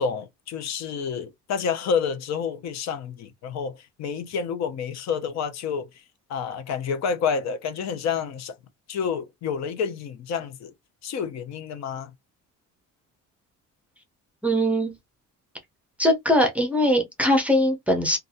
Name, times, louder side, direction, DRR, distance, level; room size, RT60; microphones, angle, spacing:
voice 1, 0.0-6.0 6.3-8.6 8.9-10.7 11.0-12.1, left 6 dB, 55° left, 0.7 m, -29 dB
voice 2, 14.4-14.9 16.0-18.2, equal, 5° right, 0.6 m, -21 dB
2.6 x 2.3 x 2.6 m
cardioid pair, 160°, 32 cm